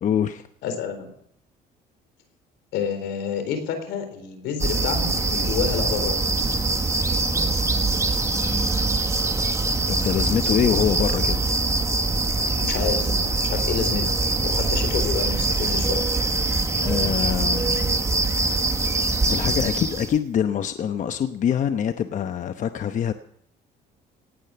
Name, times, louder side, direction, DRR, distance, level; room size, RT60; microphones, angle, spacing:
voice 1, 0.0-0.4 9.9-11.4 16.8-17.9 19.2-23.1, left 9 dB, 50° left, 9 dB, 0.9 m, -24 dB
voice 2, 0.6-1.1 2.7-6.2 12.6-14.1 14.4-16.0, left 7 dB, 85° left, 7 dB, 4.0 m, -29 dB
sound 1, 4.6-20.2, right 3 dB, 15° right, 1.4 m, -23 dB
18.5 x 10.0 x 7.0 m, 0.68 s
cardioid pair, 110°, 17 cm